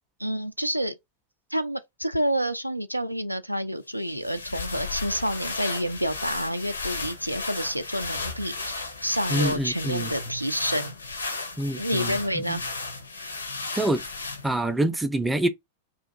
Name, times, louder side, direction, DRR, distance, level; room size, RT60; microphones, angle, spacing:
voice 1, 0.2-0.9 1.5-11.0 11.8-12.6 13.2-13.3, equal, 90° right, 0.3 m, -29 dB
sound 1, 4.0-14.7, left 3 dB, 75° left, 0.6 m, -34 dB
voice 2, 9.3-10.1 11.6-12.6 13.7-14.0 14.4-15.5, right 1 dB, 5° right, 0.4 m, -26 dB
2.8 x 2.4 x 3.5 m
figure-of-eight pair, 90°, 0 cm